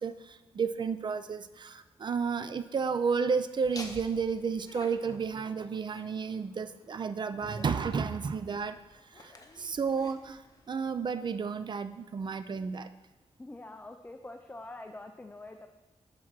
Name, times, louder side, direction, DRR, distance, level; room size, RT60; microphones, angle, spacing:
voice 1, 0.0-8.8 9.2-9.3 9.6-10.4 10.7-12.9, right 5 dB, 45° right, 11 dB, 0.4 m, -32 dB
Laughter, 3.6-11.3, left 2 dB, 35° left, 0.8 m, -51 dB
voice 2, 13.4-15.7, left 2 dB, 15° left, 5 dB, 0.4 m, -45 dB
7.2 x 4.2 x 6.0 m, 1.1 s
wide cardioid pair, 120°, 10 cm